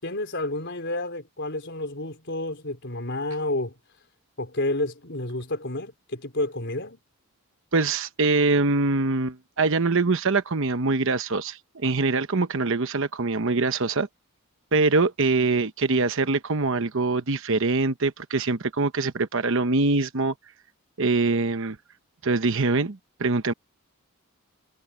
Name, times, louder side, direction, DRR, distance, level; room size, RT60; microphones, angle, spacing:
voice 1, 0.0-3.7 4.4-7.0, left 2 dB, 55° left, 4.3 m, -30 dB
voice 2, 7.7-14.1 14.7-20.3 21.0-21.8 22.2-23.5, right 3 dB, 60° right, 1.0 m, -23 dB
head